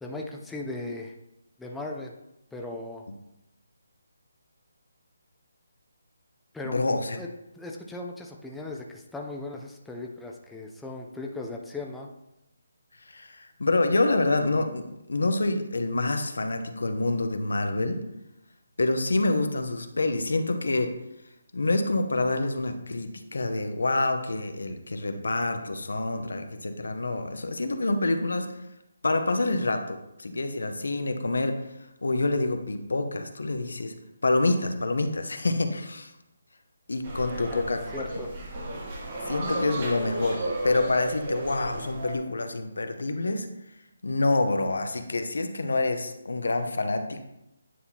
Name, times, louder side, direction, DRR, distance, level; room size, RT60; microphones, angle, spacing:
voice 1, 0.0-1.2 1.6-2.1 2.5-3.1 6.5-6.9 7.2-7.3 7.5-12.1 37.3-37.6 37.9-38.3, left 2 dB, 5° left, -1 dB, 0.4 m, -37 dB
voice 2, 6.6-7.2 13.1-18.0 18.8-20.9 21.5-28.5 29.0-31.5 32.0-33.9 34.2-36.1 36.9-38.1 39.3-43.5 44.0-47.3, left 2 dB, 85° left, 7 dB, 0.8 m, -27 dB
sound 1, 37.0-42.2, right 1 dB, 35° right, 1.3 m, -34 dB
9.4 x 4.3 x 2.8 m, 0.87 s
hypercardioid pair, 165°, 0 cm